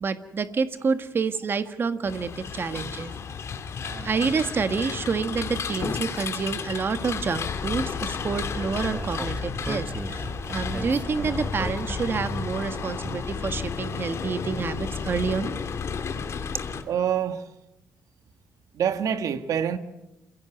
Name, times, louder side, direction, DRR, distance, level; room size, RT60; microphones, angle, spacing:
voice 1, 0.0-3.2 4.0-10.3 10.5-15.5, right 5 dB, 40° right, 1.6 m, -28 dB
sound 1, 2.1-16.8, left 6 dB, 55° left, 2.5 m, -32 dB
voice 2, 3.8-4.3 16.9-17.5 18.7-19.8, right 8 dB, 80° right, 1.8 m, -27 dB
Speech, 8.2-13.1, right 3 dB, 25° right, 1.2 m, -37 dB
28.0 x 16.5 x 9.2 m
cardioid pair, 130°, 6 cm